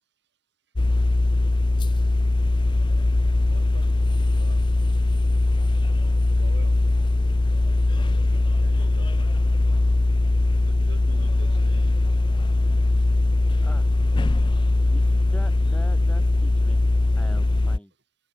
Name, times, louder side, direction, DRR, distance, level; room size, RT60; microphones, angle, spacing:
sound 1, 0.8-17.8, left 2 dB, 20° left, 0.4 m, -21 dB
voice 1, 3.4-4.7 6.3-6.8 8.1-9.3 10.6-12.1, right 1 dB, 55° right, 7.4 m, -48 dB
voice 2, 13.6-13.9 14.9-16.8 17.2-17.9, equal, 5° left, 4.3 m, -43 dB
open air
head